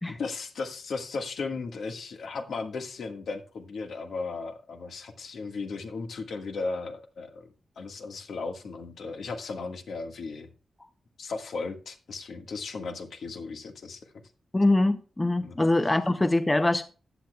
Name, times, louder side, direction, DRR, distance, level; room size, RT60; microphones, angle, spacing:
voice 1, 0.1-7.5 7.7-10.5 11.2-14.0 15.4-15.6 15.8-15.9, left 4 dB, 70° left, 1.6 m, -36 dB
voice 2, 14.5-16.9, left 2 dB, 15° left, 0.6 m, -23 dB
14.5 x 10.5 x 2.3 m
wide cardioid pair, 140°, 0 cm